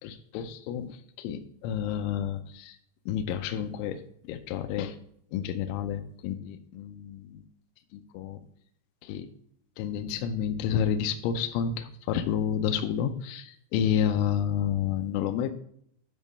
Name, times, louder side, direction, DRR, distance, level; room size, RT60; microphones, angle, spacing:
voice 1, 0.0-2.8 3.1-5.0 5.3-7.5 7.9-8.4 9.0-9.3 9.8-15.5, left 8 dB, 80° left, 6 dB, 2.9 m, -30 dB
10.5 x 4.0 x 5.2 m, 0.67 s
omnidirectional pair, 6.0 m